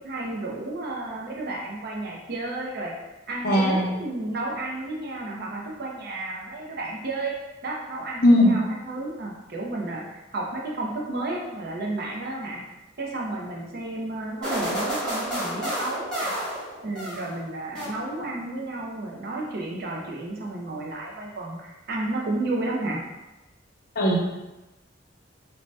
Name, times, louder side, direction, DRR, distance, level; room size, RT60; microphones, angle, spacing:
voice 1, 0.0-2.9 3.3-7.3 7.6-12.6 13.0-16.4 16.8-23.0, right 2 dB, 55° right, -2 dB, 0.6 m, -32 dB
voice 2, 3.4-3.9 8.2-8.5 24.0-24.2, left 1 dB, 55° left, -3 dB, 0.6 m, -18 dB
sound 1, 14.4-17.4 17.7-18.4, equal, 5° left, 1.1 m, -30 dB
2.7 x 2.1 x 3.1 m, 1.0 s
head